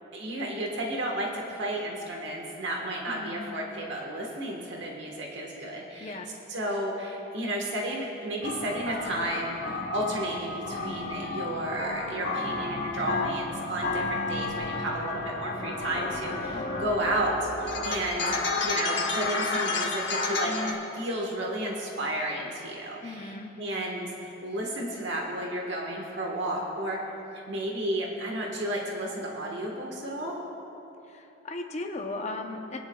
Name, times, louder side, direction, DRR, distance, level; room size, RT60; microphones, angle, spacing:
voice 1, 0.1-6.2 6.5-27.0 27.5-30.3, right 1 dB, 60° right, -1 dB, 1.4 m, -32 dB
voice 2, 3.1-3.5 6.0-6.3 16.5-16.9 23.0-23.5 31.1-32.8, left 2 dB, 35° left, 3 dB, 0.7 m, -37 dB
sound 1, 8.4-20.7, left 3 dB, 60° left, 1.1 m, -31 dB
21.5 x 10.5 x 2.3 m, 3.0 s
head